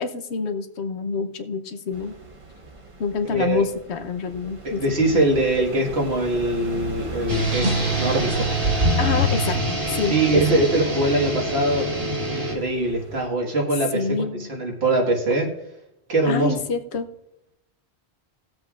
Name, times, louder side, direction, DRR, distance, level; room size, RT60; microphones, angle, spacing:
voice 1, 0.0-2.2 3.0-5.2 9.0-10.4 13.9-14.5 16.3-17.1, left 5 dB, 80° left, 8 dB, 1.1 m, -27 dB
sound 1, 1.9-13.3, right 2 dB, 30° right, 0.9 m, -38 dB
voice 2, 3.3-3.6 4.6-8.5 10.1-11.9 12.3-15.5 16.1-16.6, right 2 dB, 70° right, -1 dB, 2.0 m, -23 dB
sound 2, 7.3-12.6, right 1 dB, 55° right, 2.1 m, -24 dB
19.0 x 7.6 x 2.4 m, 0.82 s
omnidirectional pair, 1.1 m